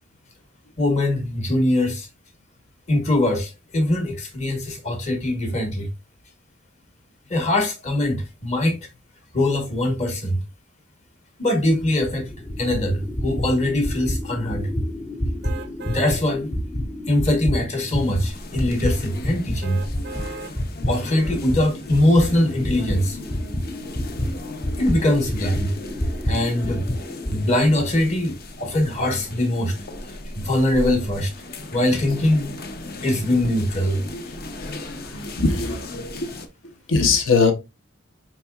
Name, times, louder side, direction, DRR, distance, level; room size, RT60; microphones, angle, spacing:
voice 1, 0.8-2.1 2.9-5.9 7.3-8.8 9.3-10.4 11.4-12.3 12.6-14.7 15.9-16.5 17.1-19.8 20.9-23.2 24.8-25.7 26.3-26.9 27.3-29.8 30.3-31.3 31.7-32.5 33.0-34.0, left 1 dB, 35° left, 1.0 m, -22 dB
sound 1, 11.8-19.6 19.9-27.4, equal, 15° left, 0.4 m, -28 dB
sound 2, 15.4-16.1 16.7-16.8 19.6-20.5 21.1-21.2, right 3 dB, 55° right, 0.4 m, -36 dB
sound 3, 17.9-36.5, left 2 dB, 50° left, 0.7 m, -37 dB
voice 2, 34.6-35.8 36.1-36.3 36.9-37.5, left 4 dB, 85° left, 0.9 m, -21 dB
4.5 x 4.1 x 2.3 m
head